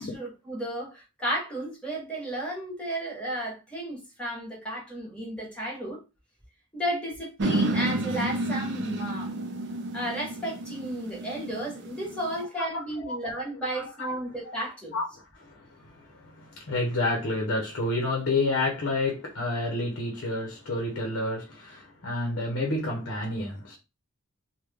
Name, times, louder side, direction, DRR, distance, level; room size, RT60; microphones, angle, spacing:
voice 1, 0.0-6.0 6.7-9.3 9.9-15.0, right 1 dB, 5° left, 1.4 m, -33 dB
sound 1, 7.4-12.4, right 1 dB, 55° right, 0.5 m, -30 dB
voice 2, 12.6-13.2 13.7-14.6 14.9-23.8, left 2 dB, 55° left, 0.8 m, -30 dB
3.2 x 2.2 x 3.4 m
head